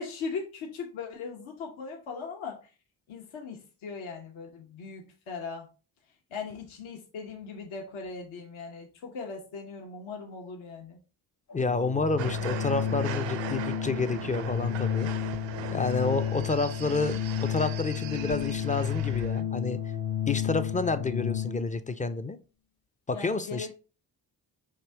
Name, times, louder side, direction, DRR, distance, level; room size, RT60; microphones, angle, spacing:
voice 1, 0.0-2.7 3.1-5.7 6.3-11.0 16.0-16.3 23.1-23.7, left 5 dB, 75° left, 0.9 m, -39 dB
Organ, 11.5-21.8, left 10 dB, 50° left, 0.7 m, -32 dB
voice 2, 11.5-15.1 15.7-17.1 17.4-19.8 20.3-22.4 23.1-23.7, left 3 dB, 20° left, 0.3 m, -29 dB
sound 1, 12.2-19.4, right 10 dB, 65° right, 0.6 m, -40 dB
5.1 x 2.7 x 3.2 m
supercardioid pair, 45°, 49 cm